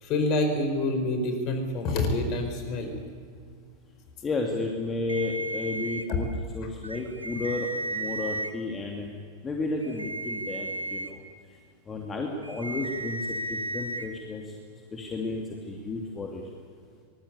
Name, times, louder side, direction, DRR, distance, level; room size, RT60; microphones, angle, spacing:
voice 1, 0.0-2.9 6.1-6.2, left 2 dB, 40° left, 6 dB, 4.6 m, -27 dB
voice 2, 4.2-9.1 9.4-11.1 11.9-14.5 14.9-16.4, left 3 dB, 20° left, 1 dB, 2.7 m, -32 dB
sound 1, 5.1-6.0 6.8-8.5 9.8-11.1 12.4-14.1, right 2 dB, 80° right, 1.3 m, -34 dB
24.5 x 19.5 x 8.4 m, 2.1 s
figure-of-eight pair, 90°, 0 cm